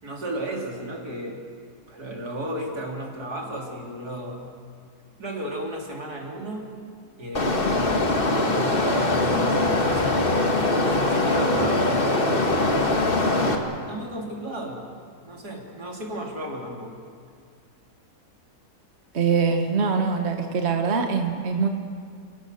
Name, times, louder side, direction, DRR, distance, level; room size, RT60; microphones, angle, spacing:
voice 1, 0.0-1.4 1.9-4.5 5.2-6.7 7.2-10.3 10.8-14.8 15.3-17.0, right 1 dB, 80° right, 0 dB, 3.7 m, -34 dB
sound 1, 7.3-13.5, left 2 dB, 35° left, 1.9 m, -22 dB
voice 2, 19.1-21.7, right 5 dB, 45° right, 4 dB, 1.5 m, -23 dB
29.5 x 18.5 x 6.6 m, 2.2 s
omnidirectional pair, 1.7 m